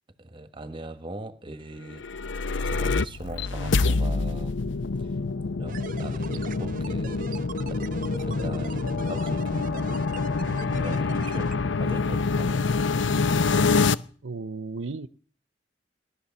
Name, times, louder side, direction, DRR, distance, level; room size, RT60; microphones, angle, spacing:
voice 1, 0.2-2.1 2.7-4.6 5.0-5.1 5.6-7.4 7.7-10.1 10.6-12.6, right 2 dB, 25° right, 1.3 m, -40 dB
sound 1, 1.9-13.9, left 4 dB, 75° left, 0.7 m, -26 dB
sound 2, 5.7-11.6, right 3 dB, 50° right, 0.9 m, -40 dB
voice 2, 14.2-15.1, right 3 dB, 85° right, 0.7 m, -34 dB
17.5 x 11.5 x 7.0 m
head